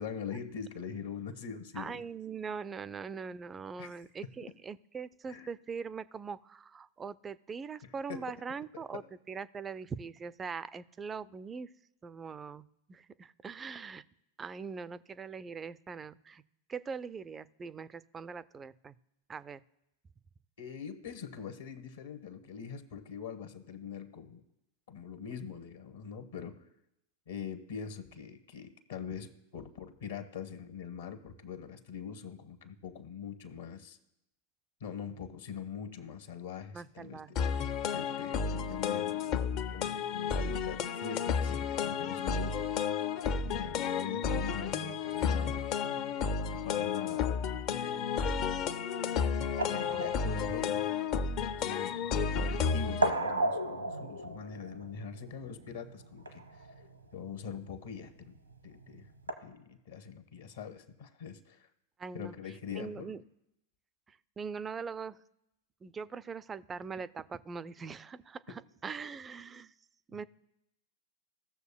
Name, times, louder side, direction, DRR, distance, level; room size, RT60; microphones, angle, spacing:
voice 1, 0.0-2.0 3.8-3.9 5.3-5.5 7.8-8.4 8.9-9.0 20.6-24.4 24.9-26.7 27.3-34.0 34.8-37.4 37.9-42.7 43.4-45.6 46.5-47.4 47.8-48.1 49.6-50.9 51.6-56.7 57.1-58.4 58.6-59.1 59.4-61.7 62.1-63.1 68.5-68.6, left 7 dB, 60° left, 7 dB, 1.1 m, -43 dB
voice 2, 1.8-11.7 12.0-14.0 14.4-16.4 16.7-19.0 19.3-19.6 36.7-37.5 62.0-62.3 62.8-63.2 64.1-65.2 65.8-69.7 70.1-70.2, right 5 dB, 20° right, 16 dB, 0.3 m, -42 dB
sound 1, 37.4-53.1, left 6 dB, 40° left, 0.5 m, -32 dB
sound 2, 45.8-59.3, right 2 dB, 85° right, 1.0 m, -38 dB
16.5 x 6.6 x 2.2 m, 0.84 s
figure-of-eight pair, 90°, 0 cm